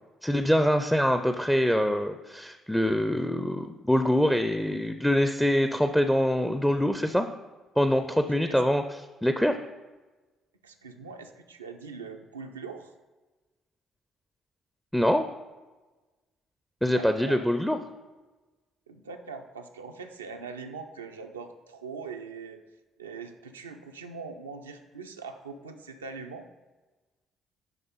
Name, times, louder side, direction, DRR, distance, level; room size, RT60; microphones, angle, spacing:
voice 1, 0.2-7.3 7.8-9.6 14.9-15.2 16.8-17.8, equal, 5° left, 8 dB, 0.5 m, -24 dB
voice 2, 8.3-8.6 10.6-13.0 16.9-17.5 18.9-22.6 23.0-26.5, right 5 dB, 85° right, 4 dB, 0.4 m, -42 dB
10.0 x 3.5 x 4.0 m, 1.2 s
figure-of-eight pair, 45°, 0 cm